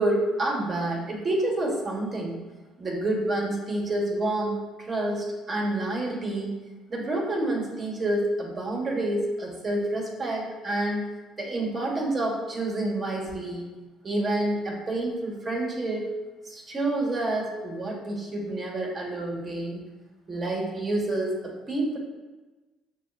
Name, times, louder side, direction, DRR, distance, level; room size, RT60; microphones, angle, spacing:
voice 1, 0.0-2.4 2.8-6.5 6.9-11.1 11.4-13.7 14.0-16.1 16.4-19.8 20.3-22.0, right 1 dB, 30° right, -2 dB, 1.3 m, -28 dB
6.7 x 2.4 x 2.3 m, 1.2 s
supercardioid pair, 65°, 0 cm